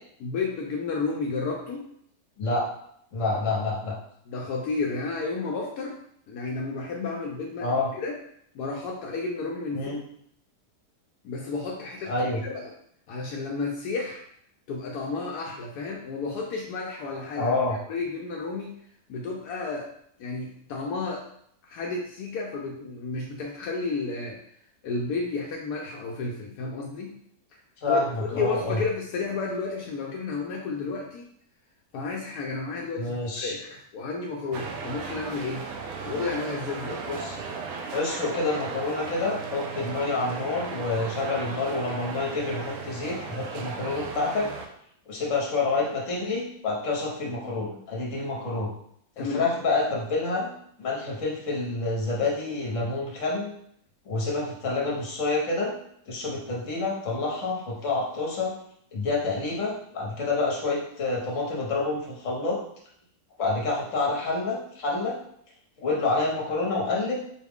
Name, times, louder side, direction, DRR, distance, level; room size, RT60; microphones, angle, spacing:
voice 1, 0.2-1.9 4.3-6.0 6.3-8.2 8.5-10.0 11.2-12.1 12.4-12.7 13.1-14.2 14.7-17.5 17.9-18.7 19.1-19.9 20.2-21.2 21.6-24.4 24.8-27.1 27.9-28.0 28.3-31.3 31.9-35.7 36.0-37.0 49.2-49.4, left 4 dB, 80° left, -1 dB, 1.1 m, -32 dB
voice 2, 3.1-3.9 7.6-7.9 9.7-10.0 12.0-12.4 17.4-17.8 27.8-28.8 33.0-33.6 37.1-37.4 37.9-44.5 45.1-48.7 49.2-50.5 50.8-53.5 54.0-55.7 56.1-58.5 58.9-62.6 63.4-65.1 65.8-67.2, left 3 dB, 55° left, -3 dB, 1.4 m, -28 dB
sound 1, 34.5-44.7, right 4 dB, 70° right, 1.0 m, -36 dB
4.8 x 2.3 x 3.5 m, 0.69 s
omnidirectional pair, 1.6 m